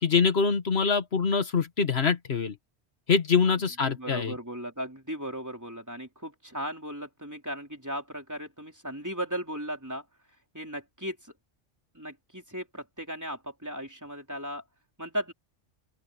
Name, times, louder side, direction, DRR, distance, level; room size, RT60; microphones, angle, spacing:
voice 1, 0.0-2.5 3.1-4.3, left 5 dB, 70° left, 1.5 m, -24 dB
voice 2, 3.8-10.0 10.5-11.3 11.9-14.6 15.0-15.3, equal, 15° right, 3.9 m, -36 dB
open air
omnidirectional pair, 1.1 m